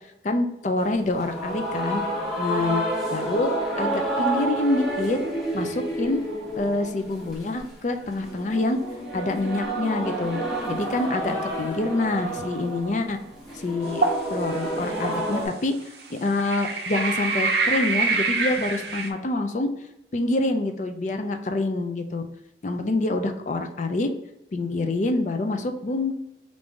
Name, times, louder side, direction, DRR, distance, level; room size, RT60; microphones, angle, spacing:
voice 1, 0.2-2.0 2.4-2.8 3.1-3.5 3.8-5.2 5.5-6.2 6.6-8.8 9.1-10.4 10.7-13.2 13.5-14.0 14.3-15.7 16.1-19.7 20.1-22.2 22.6-24.1 24.5-26.1, left 2 dB, 40° left, 6 dB, 0.4 m, -26 dB
sound 1, 0.8-15.5, right 1 dB, ahead, 0.9 m, -30 dB
sound 2, 14.0-14.3 15.0-15.1 16.4-19.1, right 4 dB, 60° right, 0.6 m, -25 dB
3.6 x 2.6 x 4.5 m, 0.88 s
head